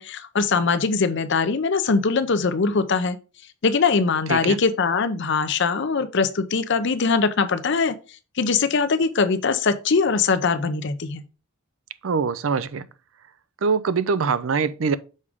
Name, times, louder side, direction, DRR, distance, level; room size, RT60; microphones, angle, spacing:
voice 1, 0.0-3.2 3.6-8.0 8.4-11.2, left 4 dB, 60° left, 0.6 m, -22 dB
voice 2, 12.0-12.9 13.6-15.0, right 5 dB, 70° right, 0.5 m, -23 dB
6.5 x 4.8 x 3.6 m
head